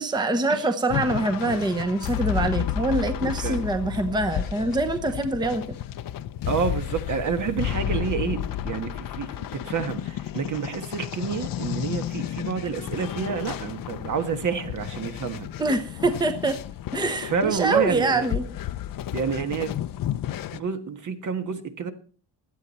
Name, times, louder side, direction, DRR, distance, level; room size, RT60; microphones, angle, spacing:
voice 1, 0.0-5.8 15.6-16.6 16.9-18.5, right 2 dB, 10° right, 8 dB, 0.9 m, -25 dB
sound 1, 0.9-20.6, left 11 dB, 55° left, 0.7 m, -32 dB
voice 2, 6.5-15.5 17.2-18.3 19.1-19.7 20.5-21.9, right 6 dB, 50° right, 8 dB, 1.6 m, -29 dB
17.0 x 11.5 x 4.3 m, 0.40 s
cardioid pair, 155°, 39 cm